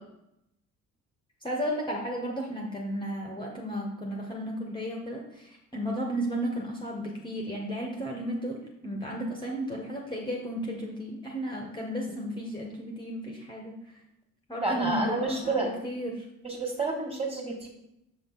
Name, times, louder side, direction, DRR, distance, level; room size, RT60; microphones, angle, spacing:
voice 1, 1.4-13.8 14.5-16.2, equal, 10° left, 0 dB, 1.4 m, -34 dB
voice 2, 14.6-15.7 16.4-17.7, right 2 dB, 15° right, 1 dB, 2.4 m, -29 dB
6.8 x 5.5 x 4.0 m, 0.83 s
figure-of-eight pair, 50°, 39 cm